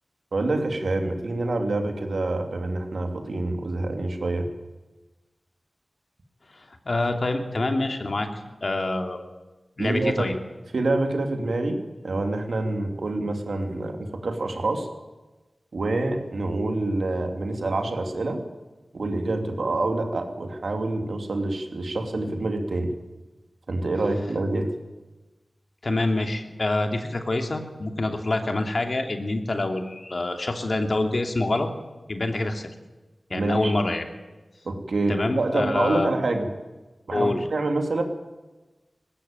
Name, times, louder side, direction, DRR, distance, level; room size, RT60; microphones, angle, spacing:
voice 1, 0.3-4.5 9.8-10.3 10.7-14.9 15.7-18.4 18.9-22.9 23.7-24.7 33.3-33.7 34.6-36.5 37.1-38.0, right 2 dB, 80° right, 5 dB, 3.0 m, -26 dB
voice 2, 6.5-8.3 8.6-9.2 9.8-10.3 25.8-31.7 32.1-32.7 33.3-34.0 35.1-36.1 37.1-37.4, left 2 dB, 60° left, 5 dB, 2.8 m, -26 dB
20.0 x 16.0 x 9.1 m, 1.2 s
cardioid pair, 40°, 0 cm